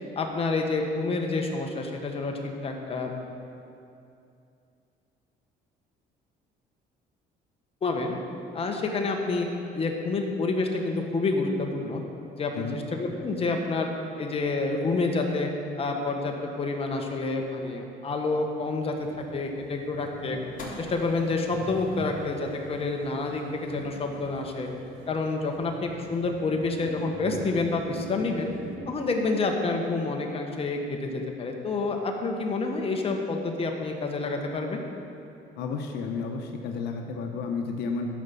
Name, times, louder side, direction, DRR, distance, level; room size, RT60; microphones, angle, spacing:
voice 1, 0.1-3.3 7.8-8.1 8.5-9.5 9.7-12.0 12.4-13.9 14.2-15.5 15.8-19.1 19.3-20.4 20.8-24.7 25.1-28.5 28.9-34.8, left 3 dB, 35° left, 2 dB, 1.4 m, -28 dB
sound 1, 18.8-28.8, right 3 dB, 80° right, 1.3 m, -45 dB
sound 2, 20.6-26.9, left 1 dB, 50° left, 2.6 m, -48 dB
voice 2, 35.6-38.1, left 5 dB, 80° left, 3 dB, 1.0 m, -32 dB
12.0 x 5.8 x 6.9 m, 2.6 s
cardioid pair, 110°, 17 cm